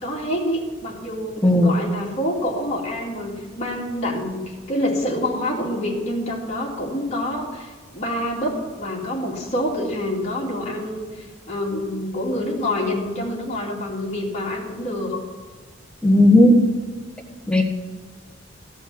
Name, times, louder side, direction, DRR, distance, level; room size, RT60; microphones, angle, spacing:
voice 1, 0.0-11.1 11.5-15.2, left 1 dB, 35° left, -3 dB, 2.5 m, -27 dB
voice 2, 1.4-1.7 16.0-16.6 17.5-17.6, left 1 dB, 5° left, 1 dB, 1.5 m, -14 dB
15.0 x 5.5 x 7.1 m, 1.5 s
head